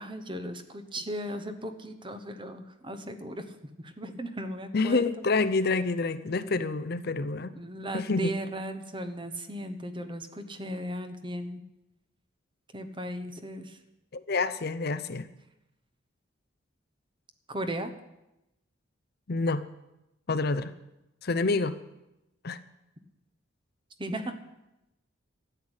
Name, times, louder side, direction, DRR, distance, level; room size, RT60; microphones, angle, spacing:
voice 1, 0.0-3.4 3.8-5.0 7.5-11.6 12.7-13.8 17.5-17.9 24.0-24.3, right 1 dB, 25° right, 8 dB, 1.1 m, -36 dB
voice 2, 4.7-7.5 7.9-8.4 14.1-15.3 19.3-19.6 20.3-20.7 21.2-21.8 22.4-22.6, left 3 dB, 50° left, 12 dB, 0.6 m, -27 dB
13.0 x 8.2 x 9.8 m, 0.92 s
head